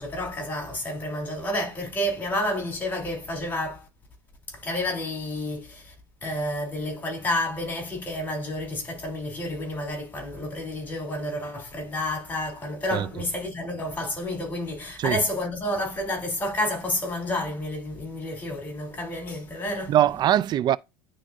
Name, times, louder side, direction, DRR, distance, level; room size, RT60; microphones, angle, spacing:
voice 1, 0.0-3.9 4.5-5.9 6.2-19.9, left 1 dB, 15° left, 3.2 m, -30 dB
voice 2, 12.9-13.3 15.0-15.2 19.9-20.8, right 12 dB, 40° right, 0.4 m, -22 dB
9.8 x 3.8 x 2.6 m
supercardioid pair, 100°, 11 cm